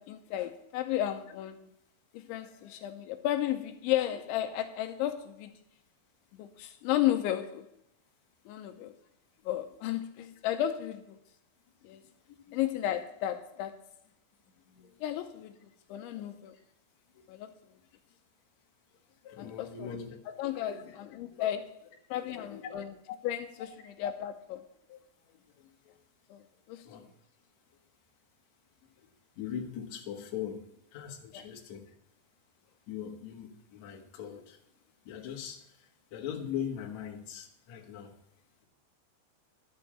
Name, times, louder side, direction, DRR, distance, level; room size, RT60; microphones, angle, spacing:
voice 1, 0.0-1.7 2.1-5.5 6.3-7.7 8.5-8.9 9.5-11.2 11.8-12.0 12.5-13.9 15.0-15.5 15.9-16.6 17.3-17.5 19.4-19.9 20.4-21.7 22.1-22.9 23.2-24.7 26.3-26.4 26.7-26.9 31.3-31.4, left 12 dB, 80° left, 3.0 m, -33 dB
voice 2, 2.4-2.8 12.3-12.6 14.7-15.0 16.1-16.4 17.1-17.2 19.2-20.2 20.5-21.0 21.3-21.6 22.2-22.7 24.9-25.0 25.2-26.0 26.8-27.0 29.0-29.1 29.4-31.9 32.9-34.6 35.0-38.1, left 8 dB, 60° left, 1.9 m, -41 dB
12.5 x 6.9 x 7.5 m
omnidirectional pair, 5.5 m